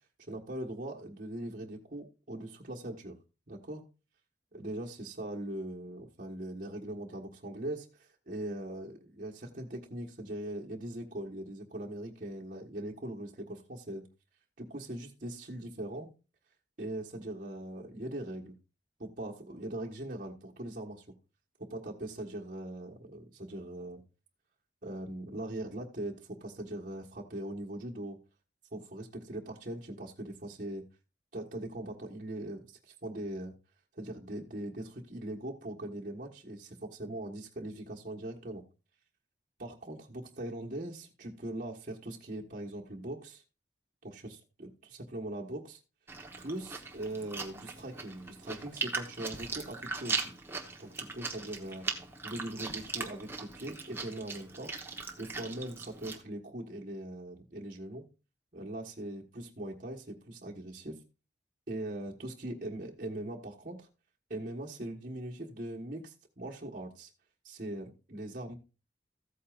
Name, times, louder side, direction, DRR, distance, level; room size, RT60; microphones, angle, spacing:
voice 1, 0.3-3.2 3.5-3.8 4.5-14.1 14.6-16.1 16.8-18.6 19.0-21.0 21.6-24.0 24.8-28.2 28.7-30.8 31.3-33.5 33.9-38.6 39.6-43.4 44.0-45.8 46.4-50.3 50.8-51.9 52.2-54.7 55.2-58.0 58.5-61.0 61.7-63.9 64.3-67.1 67.4-68.5, right 1 dB, 50° right, -2 dB, 1.5 m, -41 dB
Chewing mastication, 46.1-56.2, right 4 dB, 15° right, 1.1 m, -39 dB
14.5 x 8.5 x 2.5 m, 0.31 s
head